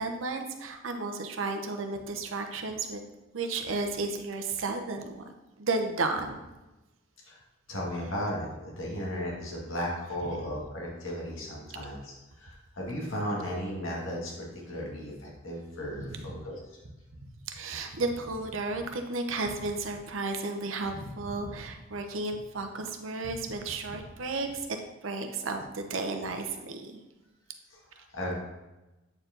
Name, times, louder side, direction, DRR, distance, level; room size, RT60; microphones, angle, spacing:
voice 1, 0.0-3.0 3.3-6.4 16.1-16.4 17.5-24.7 25.0-27.0, right 3 dB, 70° right, 5 dB, 0.8 m, -33 dB
voice 2, 7.7-16.6 27.7-28.3, equal, 75° left, -4 dB, 2.0 m, -35 dB
8.4 x 4.6 x 3.9 m, 1.0 s
head